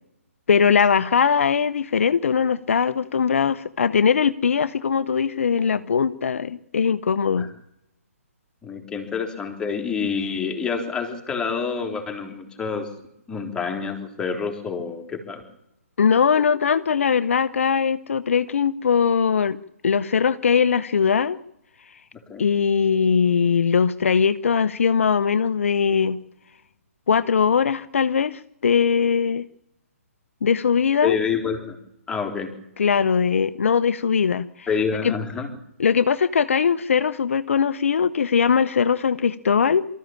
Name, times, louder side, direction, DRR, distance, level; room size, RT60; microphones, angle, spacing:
voice 1, 0.5-7.5 16.0-19.6 19.8-21.4 22.4-26.2 27.1-29.4 30.4-31.2 32.8-34.7 35.0-35.1 35.8-39.9, left 6 dB, 60° left, 14 dB, 0.9 m, -20 dB
voice 2, 8.6-12.9 13.3-15.4 22.3-22.5 31.0-31.8 32.1-32.5 34.7-35.5, left 6 dB, 10° left, 4 dB, 3.9 m, -27 dB
24.0 x 14.0 x 8.9 m, 0.86 s
figure-of-eight pair, 140°, 8 cm